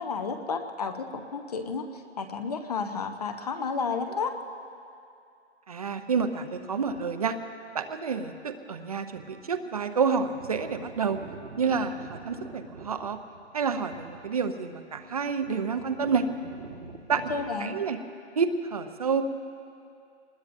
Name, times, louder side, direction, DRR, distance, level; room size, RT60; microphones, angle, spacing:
voice 1, 0.0-4.4 17.3-17.8, left 5 dB, 35° left, 7 dB, 0.9 m, -32 dB
voice 2, 5.7-7.4 7.7-11.2 11.6-13.2 13.5-16.2 17.1-17.2 17.6-18.0 18.4-19.2, right 5 dB, 30° right, 8 dB, 0.7 m, -29 dB
sound 1, 6.8-7.3 8.4-8.5 9.1-9.4 9.7-9.8 10.1-17.5, right 4 dB, 85° right, 1.7 m, -46 dB
26.0 x 20.5 x 2.6 m, 2.5 s
hypercardioid pair, 170°, 35 cm